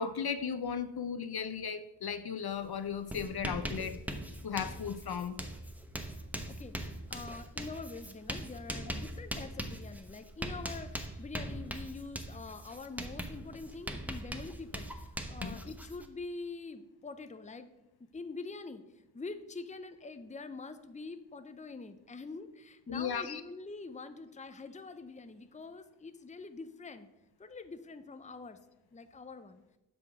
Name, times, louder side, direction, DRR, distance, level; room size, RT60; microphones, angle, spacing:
voice 1, 0.0-4.0 4.4-5.3 15.4-15.6 22.9-23.4, left 7 dB, 60° left, 11 dB, 0.6 m, -36 dB
Writing, 2.5-2.7 2.9-16.1, right 1 dB, 5° right, 0.9 m, -41 dB
voice 2, 6.0-17.7 18.0-18.8 19.1-27.1 27.4-28.6 28.9-29.6, left 3 dB, 15° left, 9 dB, 0.6 m, -45 dB
7.9 x 5.8 x 4.9 m, 0.94 s
cardioid pair, 60°, 43 cm